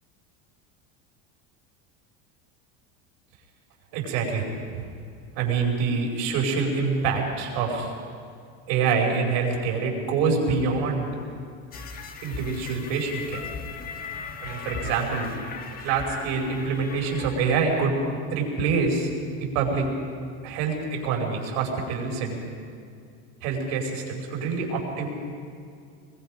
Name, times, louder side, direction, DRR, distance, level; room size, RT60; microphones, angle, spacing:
voice 1, 3.9-4.9 5.4-7.9 8.7-11.1 12.2-13.5 14.4-15.3 15.8-18.0 18.3-19.9 20.4-22.4 23.4-25.1, right 5 dB, 65° right, 0 dB, 5.3 m, -26 dB
sound 1, 11.7-17.9, left 5 dB, 25° left, 1.5 m, -38 dB
24.0 x 22.0 x 5.2 m, 2.3 s
cardioid pair, 165°, 32 cm